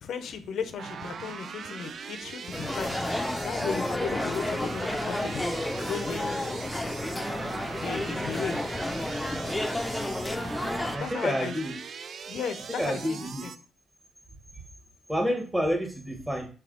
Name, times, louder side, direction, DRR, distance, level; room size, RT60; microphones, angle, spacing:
voice 1, 0.0-3.0 3.4-5.5 5.9-6.6 7.8-8.6 11.0-11.5 12.3-13.5, left 6 dB, 70° left, 10 dB, 0.5 m, -35 dB
sound 1, 0.8-13.6, right 6 dB, 55° right, 0.3 m, -41 dB
sound 2, 2.5-11.0, left 1 dB, 10° left, 0.5 m, -31 dB
voice 2, 10.9-11.7 12.8-13.4 15.1-16.5, equal, 10° right, 3 dB, 1.2 m, -29 dB
4.1 x 3.4 x 3.8 m, 0.39 s
cardioid pair, 90°, 0 cm